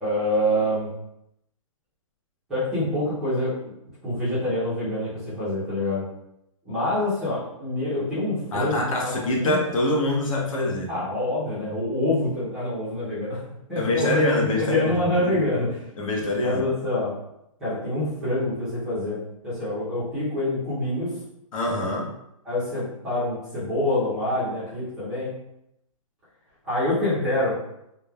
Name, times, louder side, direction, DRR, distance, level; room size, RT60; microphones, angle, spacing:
voice 1, 0.0-0.9 2.5-3.5 4.0-6.0 6.6-9.1 9.4-9.6 10.9-13.4 13.7-15.8 16.4-17.1 17.6-19.2 19.4-21.2 22.4-25.3 26.6-27.6, left 1 dB, 5° right, -14 dB, 0.5 m, -26 dB
voice 2, 8.5-10.9 11.6-11.8 13.8-15.4 16.0-16.7 21.5-22.1, left 1 dB, 70° left, -1 dB, 0.8 m, -25 dB
3.0 x 2.1 x 2.2 m, 0.82 s
hypercardioid pair, 175°, 18 cm